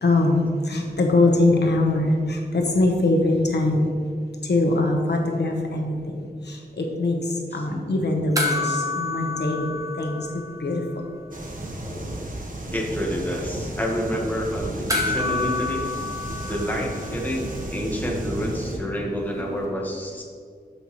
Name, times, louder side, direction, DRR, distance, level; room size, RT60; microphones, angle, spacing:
voice 1, 0.0-3.9 4.5-7.2 7.5-10.8, left 2 dB, 80° left, 2 dB, 1.1 m, -22 dB
voice 2, 7.5-7.8 11.6-12.4 12.7-15.9 16.5-20.2, equal, 10° left, -2 dB, 1.5 m, -29 dB
sound 1, 8.4-11.0 11.3-11.4 14.9-17.5 19.6-19.7, left 3 dB, 20° right, 1.2 m, -29 dB
sound 2, 11.3-18.8, right 1 dB, 50° right, 1.2 m, -33 dB
13.0 x 5.5 x 3.1 m, 2.2 s
wide cardioid pair, 95°, 17 cm